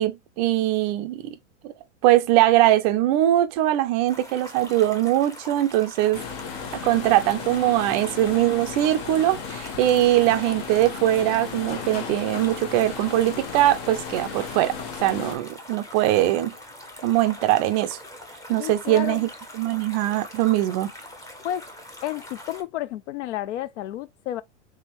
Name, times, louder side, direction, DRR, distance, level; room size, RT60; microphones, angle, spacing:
voice 1, 0.0-1.3 1.6-1.7 2.0-6.2 6.7-14.7 15.0-16.5 17.0-18.0 18.5-19.3 19.5-20.9, right 14 dB, 35° right, 0.4 m, -21 dB
sound 1, 4.1-22.6, left 1 dB, 10° left, 0.7 m, -43 dB
sound 2, 6.1-15.4, left 7 dB, 60° left, 1.0 m, -35 dB
voice 2, 18.6-19.3 21.4-21.7 22.0-24.4, left 13 dB, 75° left, 0.5 m, -31 dB
3.5 x 3.2 x 3.0 m
hypercardioid pair, 130°, 36 cm